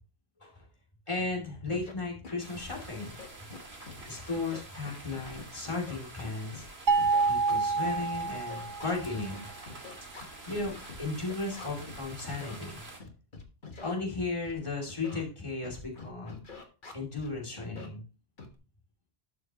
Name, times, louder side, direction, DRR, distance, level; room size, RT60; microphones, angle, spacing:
Scratching (performance technique), 1.1-1.2 1.7-1.9 2.2-2.7 3.0-4.0 4.3-6.7 7.0-12.0 12.3-12.6 13.0-13.9 14.4-14.6 14.9-15.2 15.6-17.3 17.6-17.9 18.4-18.6, left 4 dB, 50° left, 1.5 m, -46 dB
voice 1, 1.1-3.1 4.1-6.6 7.3-9.5 10.5-12.8 13.8-16.4 16.9-18.0, left 3 dB, 30° left, -3 dB, 2.8 m, -35 dB
sound 1, 2.4-13.0, right 2 dB, 75° right, 2.4 m, -48 dB
sound 2, 6.9-9.1, right 4 dB, 50° right, 0.9 m, -27 dB
12.0 x 6.4 x 2.9 m, 0.34 s
omnidirectional pair, 1.1 m